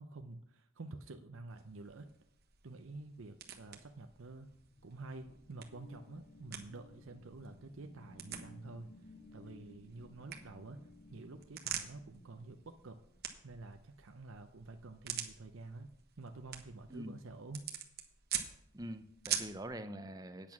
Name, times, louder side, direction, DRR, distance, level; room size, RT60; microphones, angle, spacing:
voice 1, 0.0-2.1 2.6-4.5 4.8-8.9 9.3-10.8 11.1-13.0 13.4-15.9 16.2-17.7, right 2 dB, 65° right, 5 dB, 0.7 m, -49 dB
Breaking Bones (Foley), 1.5-19.7, right 9 dB, 50° right, 1.2 m, -46 dB
sound 1, 4.5-13.5, left 2 dB, 40° left, 0.6 m, -59 dB
voice 2, 18.7-20.5, right 1 dB, 15° right, 10 dB, 0.6 m, -44 dB
8.9 x 8.4 x 6.0 m, 0.74 s
head